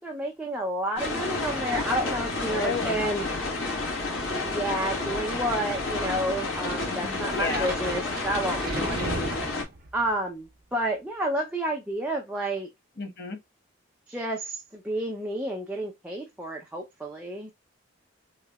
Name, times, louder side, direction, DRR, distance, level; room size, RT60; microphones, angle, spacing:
voice 1, 0.0-3.3 4.4-9.2 9.9-12.7 14.1-17.5, right 1 dB, 5° right, 0.5 m, -30 dB
sound 1, 1.0-9.6, left 2 dB, 75° left, 1.5 m, -30 dB
voice 2, 2.5-3.0 6.9-7.7 8.8-9.3 13.0-13.4, left 3 dB, 50° left, 1.1 m, -33 dB
sound 2, 7.2-10.1, right 2 dB, 45° right, 0.8 m, -35 dB
3.8 x 3.0 x 2.2 m
head